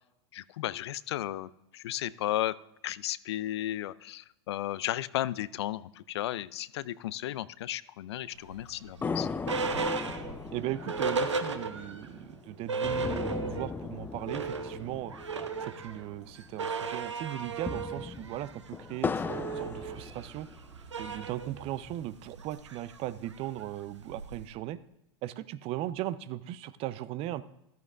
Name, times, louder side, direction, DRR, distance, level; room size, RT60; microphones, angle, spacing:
voice 1, 0.3-2.6 2.8-9.3, left 13 dB, 70° left, 18 dB, 0.5 m, -34 dB
sound 1, 8.4-12.1 12.4-12.5 12.7-13.8 14.1-24.5, right 4 dB, 90° right, 0.9 m, -36 dB
sound 2, 9.0-16.6 16.9-17.0 17.4-20.8 21.3-22.3, left 5 dB, 15° left, 0.4 m, -38 dB
voice 2, 10.5-15.1 15.6-20.5 21.0-24.8 25.2-27.4, right 14 dB, 40° right, 16 dB, 0.6 m, -38 dB
15.0 x 12.5 x 2.5 m, 0.85 s
hypercardioid pair, 100°, 15 cm